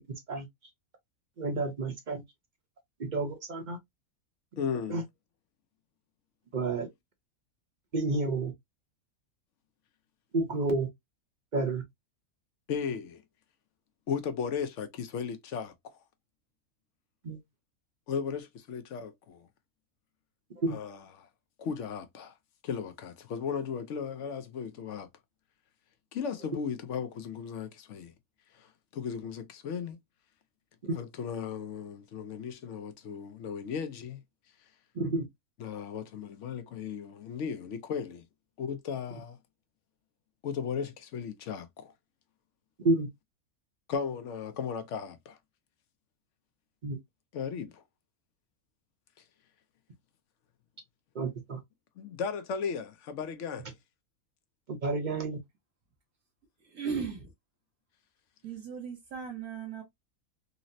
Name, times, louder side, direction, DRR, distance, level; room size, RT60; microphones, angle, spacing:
voice 1, 1.4-2.2 3.1-3.8 4.9-5.0 6.5-6.9 7.9-8.5 10.3-10.9 11.5-11.8 17.2-17.4 20.6-20.8 30.8-31.0 35.0-35.2 42.8-43.1 46.8-47.0 51.1-51.6 54.8-55.4, right 2 dB, 45° right, 0.7 m, -30 dB
voice 2, 4.6-5.0 12.7-13.2 14.1-16.0 18.1-19.5 20.7-21.3 21.6-22.4 22.6-25.1 26.1-28.1 28.5-30.0 30.9-34.2 35.6-38.3 38.6-39.4 40.4-41.9 43.9-45.4 47.3-47.8 52.0-53.7, left 6 dB, 65° left, 0.8 m, -36 dB
voice 3, 56.6-57.3 58.4-59.8, right 6 dB, 90° right, 1.4 m, -37 dB
4.0 x 2.0 x 2.6 m
omnidirectional pair, 1.5 m